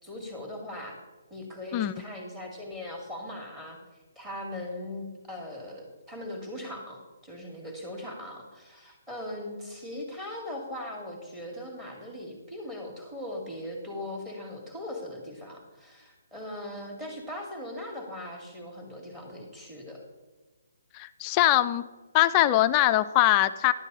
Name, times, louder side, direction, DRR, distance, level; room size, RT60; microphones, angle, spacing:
voice 1, 0.0-1.0 1.3-3.8 4.2-20.0, left 1 dB, 10° right, 0 dB, 2.2 m, -39 dB
voice 2, 20.9-21.9 22.1-23.7, left 14 dB, 25° left, 12 dB, 0.3 m, -22 dB
11.0 x 8.2 x 4.1 m, 1.2 s
hypercardioid pair, 150°, 0 cm